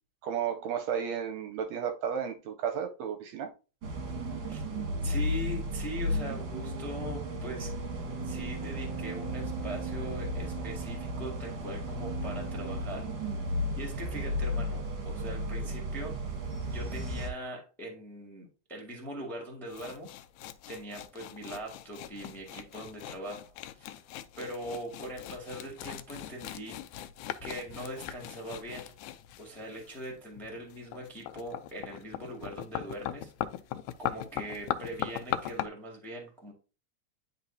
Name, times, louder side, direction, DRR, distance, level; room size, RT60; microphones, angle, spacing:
voice 1, 0.2-3.5, right 8 dB, 75° right, 1.7 m, -33 dB
sound 1, 3.8-17.3, equal, 55° right, 1.5 m, -34 dB
voice 2, 5.0-7.7 8.2-13.1 13.8-16.2 16.7-20.1 20.7-24.0 24.4-26.8 27.4-28.9 29.4-33.3 34.0-36.5, right 1 dB, ahead, 1.1 m, -41 dB
sound 2, 19.7-35.7, left 12 dB, 90° left, 2.0 m, -40 dB
9.9 x 4.0 x 2.7 m
omnidirectional pair, 3.4 m